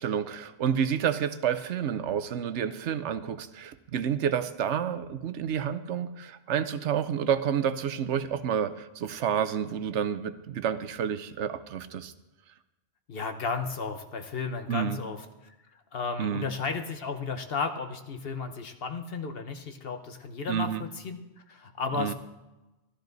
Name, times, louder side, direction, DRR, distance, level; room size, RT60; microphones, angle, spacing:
voice 1, 0.0-12.1 14.7-15.0 16.2-16.5 20.5-20.8 22.0-22.1, right 8 dB, 85° right, 12 dB, 1.0 m, -29 dB
voice 2, 13.1-15.2 15.4-15.5 15.9-21.2 21.5-22.1, left 4 dB, 60° left, 7 dB, 1.1 m, -33 dB
13.0 x 13.0 x 4.0 m, 1.0 s
omnidirectional pair, 1.2 m